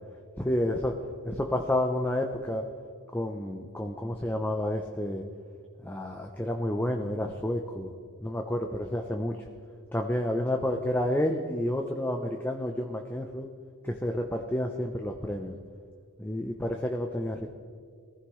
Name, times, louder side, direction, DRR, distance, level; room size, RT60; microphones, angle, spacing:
voice 1, 0.4-0.9 1.2-2.7 3.1-5.2 5.8-7.9 8.2-9.5 9.9-13.5 13.8-15.5 16.2-17.5, left 1 dB, 10° left, 3 dB, 0.6 m, -30 dB
22.0 x 15.0 x 3.2 m, 2.1 s
head